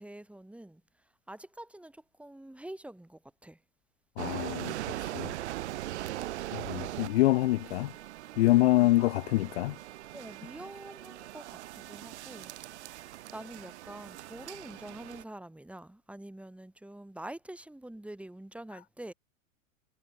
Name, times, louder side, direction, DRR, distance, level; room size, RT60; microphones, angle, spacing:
voice 1, 0.0-3.6 8.7-9.1 10.1-19.1, right 1 dB, 5° right, 5.8 m, -46 dB
voice 2, 4.2-5.3 6.5-7.9 8.4-9.8, left 17 dB, 50° left, 0.7 m, -26 dB
sound 1, 4.2-15.2, right 15 dB, 55° right, 1.0 m, -41 dB
figure-of-eight pair, 100°, 41 cm